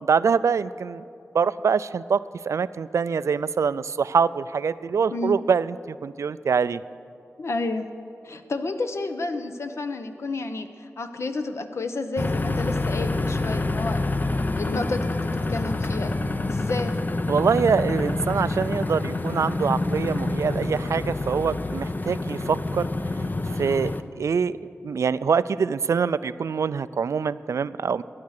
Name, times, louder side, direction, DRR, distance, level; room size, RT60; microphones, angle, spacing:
voice 1, 0.0-1.0 1.3-2.2 2.5-6.8 17.3-22.9 23.6-23.9 24.2-24.6 24.8-28.0, right 6 dB, 75° right, 17 dB, 0.3 m, -24 dB
voice 2, 7.4-7.9 8.2-14.0 14.6-16.1 16.4-17.0, left 3 dB, 60° left, 8 dB, 0.9 m, -30 dB
sound 1, 12.2-24.0, left 2 dB, 35° left, 0.6 m, -27 dB
13.0 x 9.6 x 6.5 m, 2.5 s
wide cardioid pair, 70°, 5 cm